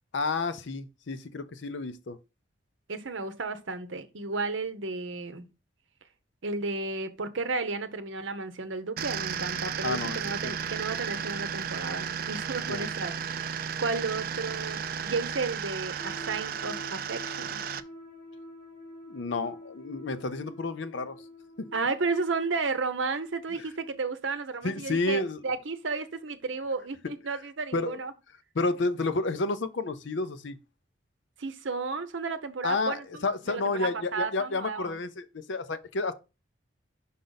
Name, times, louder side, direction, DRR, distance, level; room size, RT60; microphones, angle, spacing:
voice 1, 0.1-2.2 9.8-10.6 12.7-12.9 19.1-21.2 21.6-21.7 24.6-25.4 27.7-28.0 28.5-30.6 32.6-33.0 33.2-36.1, left 3 dB, 70° left, 0.6 m, -30 dB
voice 2, 2.9-5.4 6.4-17.6 21.7-28.1 31.4-35.0, right 4 dB, 75° right, 0.8 m, -33 dB
sound 1, 9.0-17.8, right 7 dB, 45° right, 0.4 m, -34 dB
sound 2, 16.0-22.3, left 1 dB, 45° left, 1.6 m, -47 dB
5.5 x 5.1 x 3.9 m
head